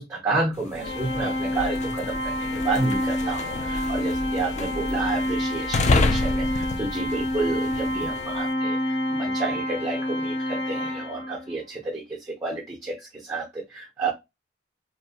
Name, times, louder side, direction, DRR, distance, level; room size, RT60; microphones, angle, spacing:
voice 1, 0.0-14.1, right 3 dB, 20° right, 0.5 m, -30 dB
sound 1, 0.6-8.4, left 3 dB, 40° left, 0.3 m, -29 dB
Organ, 0.8-11.5, left 1 dB, 80° left, 0.7 m, -28 dB
2.8 x 2.0 x 2.7 m
head